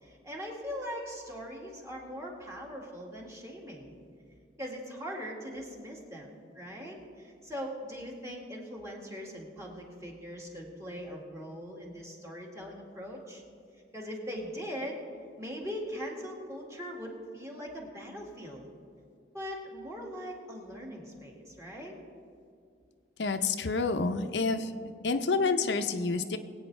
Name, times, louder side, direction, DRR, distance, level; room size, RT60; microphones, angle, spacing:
voice 1, 0.0-4.0 4.6-13.4 13.9-15.0 15.4-18.7 19.3-21.9, equal, 15° right, -2 dB, 1.9 m, -41 dB
voice 2, 23.2-24.7 25.0-26.4, left 4 dB, 80° left, 7 dB, 0.6 m, -28 dB
21.5 x 8.8 x 3.3 m, 2.4 s
head